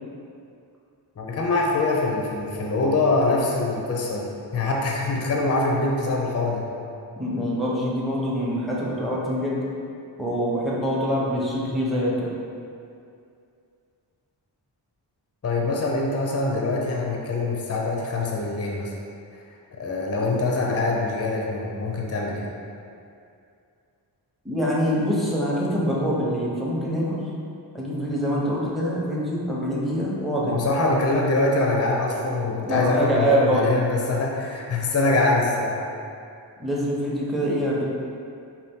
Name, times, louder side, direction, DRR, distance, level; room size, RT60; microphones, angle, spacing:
voice 1, 1.2-6.6 15.4-18.9 19.8-22.5 30.4-35.8, left 2 dB, 35° left, -2 dB, 0.6 m, -24 dB
voice 2, 7.2-9.6 10.2-12.3 24.4-27.2 27.7-30.5 32.6-33.7 36.6-37.8, equal, ahead, -6 dB, 0.8 m, -24 dB
4.1 x 2.4 x 3.6 m, 2.5 s
wide cardioid pair, 75°, 44 cm